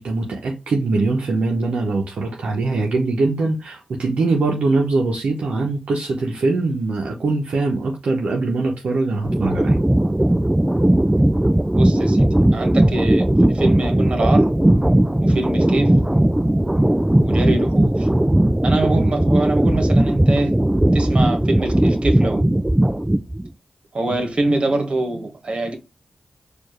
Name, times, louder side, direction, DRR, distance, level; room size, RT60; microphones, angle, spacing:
voice 1, 0.0-9.8 24.1-24.2 24.5-24.6, right 3 dB, 80° right, 0.8 m, -22 dB
sound 1, 9.2-23.5, right 1 dB, 15° right, 0.3 m, -17 dB
voice 2, 11.7-12.3 12.5-14.5 15.2-16.0 17.2-18.1 18.6-20.5 20.9-22.4 23.9-25.8, right 2 dB, 60° right, 1.3 m, -24 dB
4.4 x 2.5 x 3.0 m
cardioid pair, 45°, 2 cm